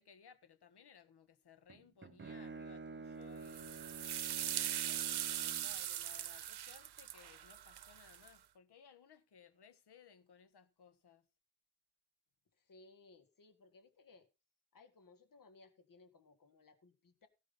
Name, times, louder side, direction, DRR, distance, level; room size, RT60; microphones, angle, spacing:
voice 1, 0.0-3.8 4.3-11.2, left 7 dB, 80° left, 1.6 m, -62 dB
Bowed string instrument, 1.7-5.8, right 4 dB, 30° right, 0.8 m, -49 dB
sound 1, 3.4-8.3, right 11 dB, 75° right, 0.8 m, -41 dB
voice 2, 12.6-14.3 14.7-17.3, left 3 dB, 55° left, 2.0 m, -63 dB
17.0 x 6.1 x 5.5 m
wide cardioid pair, 170°, 39 cm